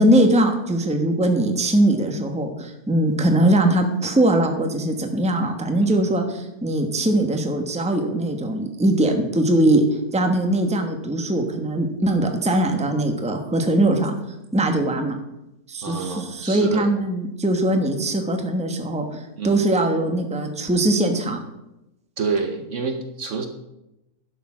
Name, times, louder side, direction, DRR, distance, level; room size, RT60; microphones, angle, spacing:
voice 1, 0.0-9.8 10.1-14.1 14.5-15.2 15.7-21.4, right 1 dB, 5° right, 5 dB, 1.0 m, -21 dB
voice 2, 15.8-16.9 19.4-19.6 22.2-23.5, right 4 dB, 55° right, 7 dB, 1.1 m, -28 dB
11.0 x 6.6 x 6.1 m, 0.92 s
omnidirectional pair, 1.7 m